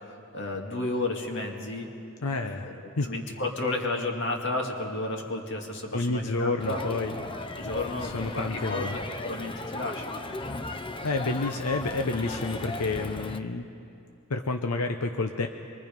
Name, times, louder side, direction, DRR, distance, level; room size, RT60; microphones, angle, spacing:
voice 1, 0.0-1.9 2.4-6.8 7.6-10.1, left 2 dB, 55° left, 1 dB, 2.3 m, -32 dB
voice 2, 2.2-3.1 5.9-7.1 8.0-9.0 11.0-13.7 14.3-15.5, left 3 dB, 85° left, 5 dB, 0.8 m, -29 dB
Crowd, 6.6-13.4, left 2 dB, 20° left, 0.6 m, -36 dB
25.5 x 22.5 x 5.3 m, 2.7 s
head